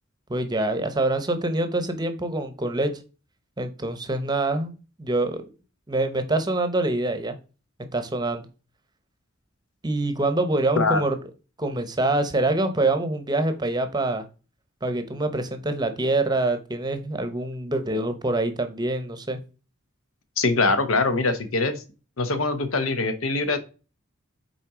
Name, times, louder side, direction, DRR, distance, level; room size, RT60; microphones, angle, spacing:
voice 1, 0.3-2.9 3.6-4.7 5.0-5.4 5.9-7.3 7.9-8.5 9.8-11.2 11.6-14.2 14.8-19.4, right 2 dB, 20° right, 9 dB, 0.8 m, -25 dB
voice 2, 20.4-21.8 22.2-23.6, left 3 dB, 75° left, 10 dB, 1.0 m, -23 dB
5.8 x 4.3 x 4.9 m, 0.34 s
head